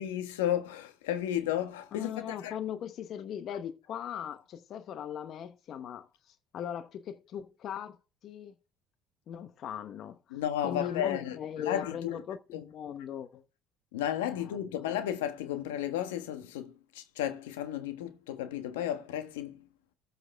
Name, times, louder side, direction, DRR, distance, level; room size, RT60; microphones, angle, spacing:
voice 1, 0.0-2.5 10.3-12.2 12.5-12.6 13.9-19.6, left 11 dB, 90° left, 1.3 m, -33 dB
voice 2, 1.9-8.0 8.2-8.5 9.3-13.4 14.3-14.9, left 9 dB, 55° left, 0.9 m, -39 dB
14.0 x 6.8 x 3.4 m
supercardioid pair, 75°, 0 cm